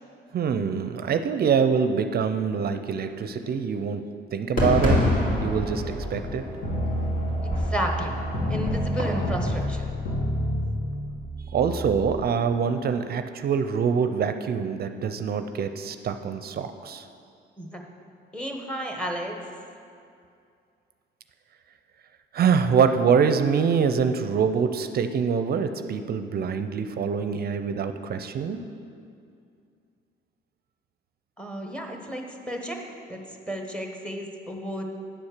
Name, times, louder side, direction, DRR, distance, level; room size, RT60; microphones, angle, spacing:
voice 1, 0.3-5.1 5.4-6.4 11.5-17.1 22.3-28.6, right 6 dB, 50° right, 9 dB, 0.5 m, -25 dB
Fireworks, 4.6-9.6, left 1 dB, 45° left, 2.2 m, -27 dB
sound 1, 6.6-12.1, equal, 85° left, 2.2 m, -29 dB
voice 2, 7.4-8.1 8.5-9.9 17.6-17.8 18.3-19.4 31.4-32.8 33.1-33.2 33.5-34.8, equal, 5° left, 2 dB, 1.1 m, -32 dB
10.0 x 4.3 x 6.5 m, 2.4 s
cardioid pair, 90°, 20 cm